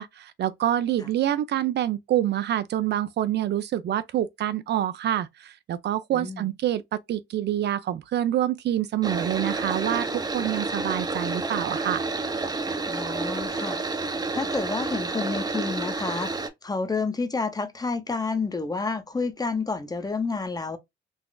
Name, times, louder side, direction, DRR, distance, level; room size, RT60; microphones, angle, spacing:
voice 1, 0.0-12.0, right 11 dB, 60° right, 0.4 m, -26 dB
voice 2, 6.1-6.5 12.9-13.8 14.3-20.8, left 4 dB, 20° left, 0.7 m, -29 dB
sound 1, 9.0-16.5, right 3 dB, 20° right, 0.6 m, -29 dB
3.9 x 2.4 x 2.2 m
cardioid pair, 90°, 20 cm